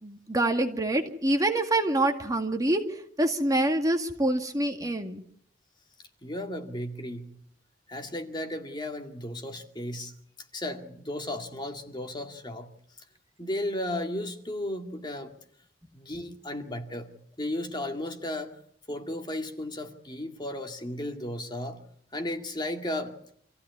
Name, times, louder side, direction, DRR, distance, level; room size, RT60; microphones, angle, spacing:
voice 1, 0.0-5.2, right 1 dB, 20° right, 4 dB, 1.9 m, -26 dB
voice 2, 6.2-7.3 7.9-10.1 10.5-12.7 13.4-15.3 15.9-17.1 17.4-18.6 18.9-21.8 22.1-23.2, left 1 dB, 25° left, 4 dB, 2.1 m, -34 dB
26.0 x 15.5 x 9.6 m, 0.69 s
head